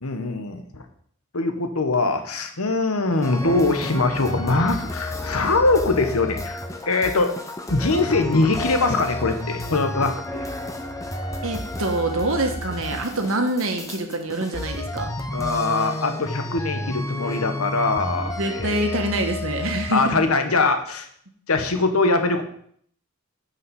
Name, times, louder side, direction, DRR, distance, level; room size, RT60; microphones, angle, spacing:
voice 1, 0.0-0.8 1.3-7.3 7.7-10.4 15.3-19.0 19.9-21.1 21.5-22.4, left 3 dB, 85° left, 7 dB, 1.2 m, -22 dB
sound 1, 3.2-20.1, left 1 dB, 15° left, 0.8 m, -31 dB
voice 2, 11.4-15.1 18.4-20.2, right 2 dB, 70° right, 4 dB, 1.6 m, -25 dB
9.8 x 5.6 x 5.4 m, 0.63 s
head